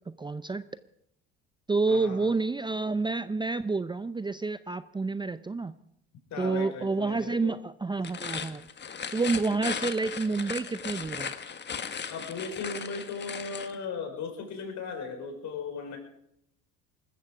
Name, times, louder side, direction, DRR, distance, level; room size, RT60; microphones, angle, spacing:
voice 1, 0.1-0.6 1.7-5.7 6.4-8.6 9.1-11.3, right 3 dB, 15° right, 14 dB, 0.6 m, -29 dB
voice 2, 1.8-2.3 6.3-7.5 12.1-16.0, left 5 dB, 55° left, 4 dB, 5.4 m, -37 dB
sound 1, 8.0-13.8, left 6 dB, 30° left, 1.5 m, -37 dB
20.0 x 14.0 x 5.0 m, 0.77 s
supercardioid pair, 80°, 34 cm